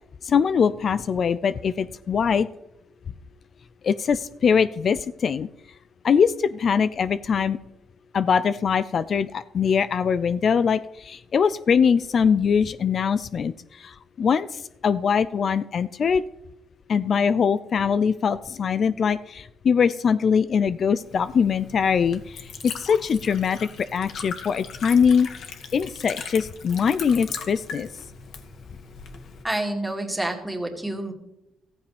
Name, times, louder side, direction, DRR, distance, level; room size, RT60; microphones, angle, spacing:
voice 1, 0.2-2.5 3.8-5.5 6.0-7.6 8.1-16.2 16.9-25.3 25.7-27.9, left 6 dB, 50° left, 15 dB, 0.5 m, -22 dB
Liquid, 20.9-29.4, left 5 dB, 70° left, 1.9 m, -39 dB
voice 2, 29.4-31.1, right 1 dB, 10° right, 2 dB, 2.5 m, -28 dB
14.5 x 14.5 x 3.4 m, 0.87 s
cardioid pair, 90°, 0 cm